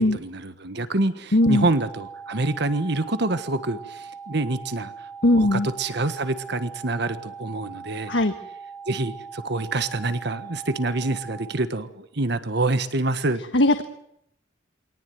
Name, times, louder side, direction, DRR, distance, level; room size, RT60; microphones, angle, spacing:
voice 1, 0.0-5.1 5.3-8.1 8.9-13.4, right 2 dB, 60° right, 11 dB, 1.5 m, -26 dB
voice 2, 1.3-1.7 5.2-5.7 8.1-8.3 13.5-13.8, left 1 dB, 70° left, 7 dB, 1.5 m, -18 dB
sound 1, 1.4-11.4, right 5 dB, 15° left, 6.0 m, -41 dB
24.0 x 18.5 x 9.3 m, 0.74 s
head